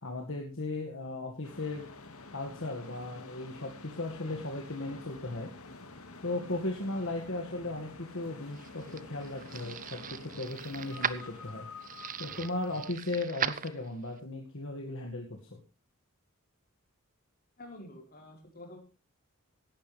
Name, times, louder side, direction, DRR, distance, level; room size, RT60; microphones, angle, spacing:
voice 1, 0.0-1.9 2.3-5.5 6.2-11.7 12.2-15.6, left 2 dB, 60° left, 1 dB, 2.1 m, -36 dB
sound 1, 1.4-12.9, left 3 dB, 80° left, 2.1 m, -49 dB
sound 2, 8.2-14.2, right 8 dB, 40° right, 0.7 m, -39 dB
voice 2, 17.6-18.8, left 1 dB, 45° left, 2 dB, 4.7 m, -48 dB
16.5 x 11.5 x 3.4 m, 0.31 s
head